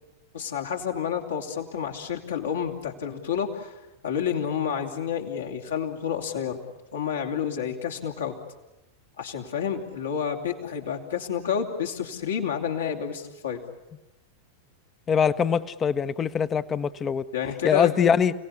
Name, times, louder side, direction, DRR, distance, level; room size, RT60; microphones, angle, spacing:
voice 1, 0.3-3.7 4.0-6.6 6.9-8.3 9.2-13.6 17.3-17.9, left 8 dB, 65° left, 2 dB, 3.1 m, -29 dB
voice 2, 15.1-17.2 17.6-18.3, left 7 dB, 25° left, 15 dB, 1.0 m, -23 dB
30.0 x 18.0 x 9.9 m, 1.0 s
figure-of-eight pair, 90°, 0 cm